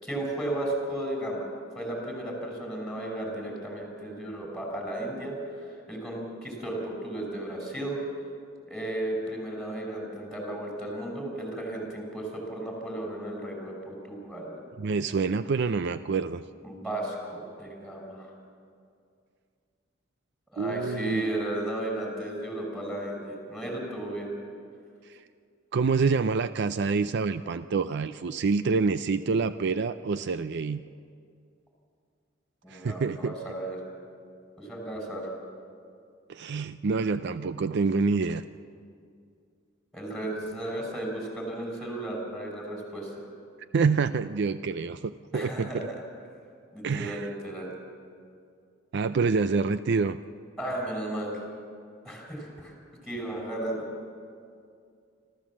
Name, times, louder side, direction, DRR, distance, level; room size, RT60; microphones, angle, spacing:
voice 1, 0.0-1.5 1.8-8.0 8.7-14.6 16.6-18.3 20.5-24.3 32.6-33.8 34.6-35.3 39.9-43.3 45.3-46.0 46.7-47.7 50.6-51.4 52.0-52.7 53.0-53.8, right 1 dB, ahead, 0 dB, 5.4 m, -34 dB
voice 2, 14.8-16.4 20.6-21.3 25.1-25.2 25.7-30.8 32.7-33.3 36.3-38.4 43.7-45.9 46.8-47.3 48.9-50.2, right 4 dB, 60° right, 12 dB, 0.4 m, -27 dB
26.5 x 14.0 x 7.3 m, 2.3 s
head